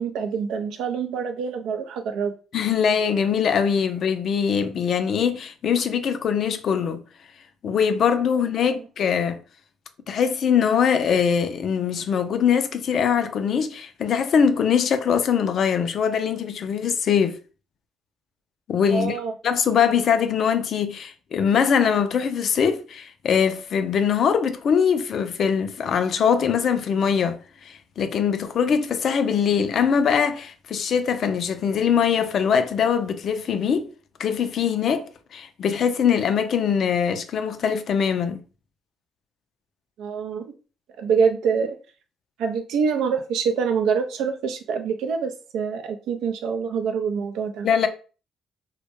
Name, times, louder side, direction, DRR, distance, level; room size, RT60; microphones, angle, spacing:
voice 1, 0.0-2.3 18.9-19.3 40.0-40.5 41.0-41.8 42.4-47.7, right 6 dB, 70° right, 0.4 m, -25 dB
voice 2, 2.5-7.0 7.6-9.4 10.1-17.4 18.7-19.2 19.4-33.9 34.2-38.4 47.6-47.9, left 7 dB, 60° left, 0.3 m, -22 dB
2.1 x 2.1 x 2.9 m
hypercardioid pair, 55°, 0 cm